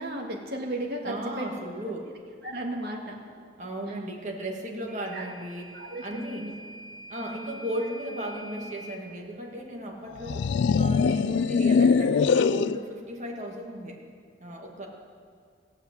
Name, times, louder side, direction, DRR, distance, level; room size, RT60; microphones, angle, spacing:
voice 1, 0.0-1.5 2.4-3.2 5.1-5.3 5.7-6.0 6.4-6.5, right 1 dB, 60° right, 0 dB, 1.9 m, -34 dB
voice 2, 1.0-2.1 3.6-6.5 7.1-14.0 14.4-14.9, right 1 dB, 40° right, -1 dB, 2.0 m, -36 dB
Microwave oven / Alarm, 4.9-9.0, right 1 dB, 5° right, 4.6 m, -45 dB
sound 1, 10.2-12.8, left 5 dB, 80° left, 0.3 m, -22 dB
16.0 x 8.6 x 7.8 m, 2.1 s
head